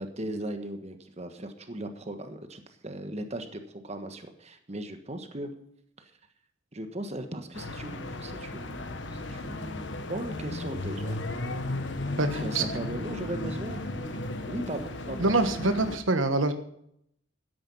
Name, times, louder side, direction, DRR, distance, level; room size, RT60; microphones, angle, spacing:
voice 1, 0.0-5.5 6.0-6.1 6.7-11.2 12.4-14.2 14.5-15.3, right 1 dB, 35° right, 7 dB, 1.4 m, -38 dB
sound 1, 7.5-16.0, left 2 dB, 65° left, 1.3 m, -35 dB
voice 2, 12.2-12.6 15.2-16.5, right 2 dB, 85° right, 9 dB, 1.3 m, -25 dB
13.0 x 10.5 x 5.6 m, 0.71 s
head